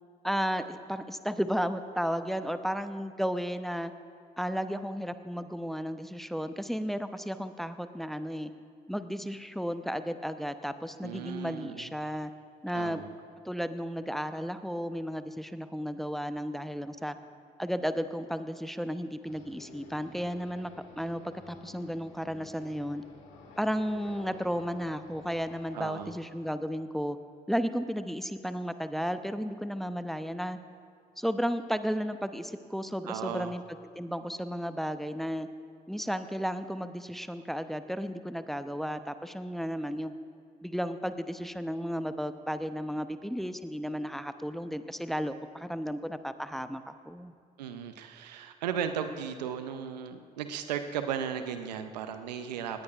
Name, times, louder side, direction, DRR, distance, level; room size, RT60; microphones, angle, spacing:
voice 1, 0.2-3.9 4.4-8.5 8.9-12.3 12.6-13.0 13.4-17.2 17.6-23.0 23.6-27.2 27.5-30.6 31.2-33.6 33.9-35.5 35.9-40.1 40.6-47.3, equal, ahead, 10 dB, 0.8 m, -33 dB
voice 2, 11.0-11.9 12.7-13.1 25.7-26.1 33.1-33.5 47.6-52.8, right 8 dB, 85° right, 9 dB, 0.6 m, -36 dB
sound 1, 19.2-26.1, left 4 dB, 75° left, 2.0 m, -51 dB
20.0 x 17.5 x 2.5 m, 2.2 s
hypercardioid pair, 45°, 21 cm